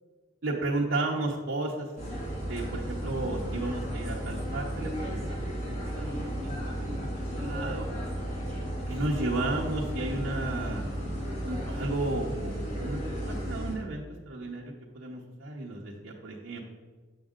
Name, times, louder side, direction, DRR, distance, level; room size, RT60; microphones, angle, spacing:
voice 1, 0.4-1.9 2.5-7.1 7.4-7.9 8.9-10.9 11.4-16.6, right 2 dB, 70° right, -4 dB, 0.9 m, -33 dB
sound 1, 2.0-13.7, equal, 35° left, 2.0 m, -34 dB
8.2 x 6.3 x 3.7 m, 1.3 s
head